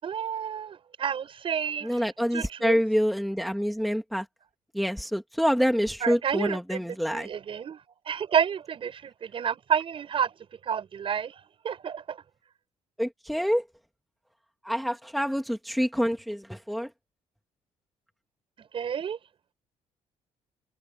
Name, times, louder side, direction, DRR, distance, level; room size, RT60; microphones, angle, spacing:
voice 1, 0.0-2.0 2.3-2.8 6.0-6.8 7.1-10.3 10.7-12.2 18.7-19.2, right 8 dB, 45° right, 7.6 m, -30 dB
voice 2, 1.8-4.3 4.7-7.3 13.0-13.6 14.6-16.9, equal, ahead, 2.3 m, -27 dB
cardioid pair, 115°, 13 cm